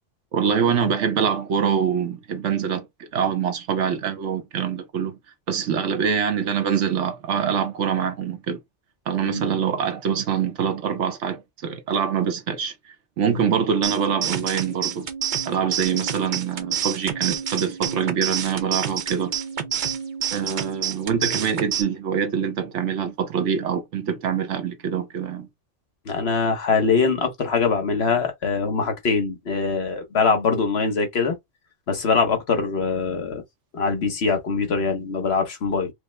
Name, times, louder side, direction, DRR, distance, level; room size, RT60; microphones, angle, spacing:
voice 1, 0.3-2.9 3.1-5.2 5.5-8.6 9.1-12.7 13.2-15.1 15.4-19.4 20.3-25.5, right 7 dB, 75° right, 1.2 m, -24 dB
sound 1, 13.8-21.8, right 9 dB, 45° right, 0.7 m, -28 dB
voice 2, 26.1-31.4 31.9-33.4 33.7-35.9, left 5 dB, 55° left, 1.2 m, -23 dB
5.0 x 2.1 x 3.2 m
omnidirectional pair, 1.3 m